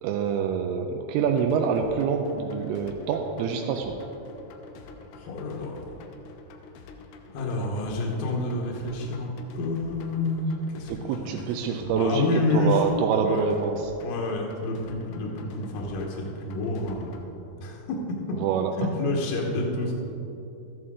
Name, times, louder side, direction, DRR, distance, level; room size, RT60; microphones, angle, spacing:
voice 1, 0.0-4.0 10.9-14.0 18.4-18.7, right 6 dB, 80° right, 3 dB, 2.4 m, -26 dB
sound 1, 1.3-17.3, left 3 dB, 90° left, 2.8 m, -47 dB
voice 2, 5.1-6.0 7.3-9.3 9.6-12.8 13.3-13.5 14.0-17.2 17.6-18.0 18.8-19.9, left 2 dB, 65° left, -2 dB, 2.5 m, -29 dB
13.5 x 11.0 x 3.7 m, 3.0 s
omnidirectional pair, 4.8 m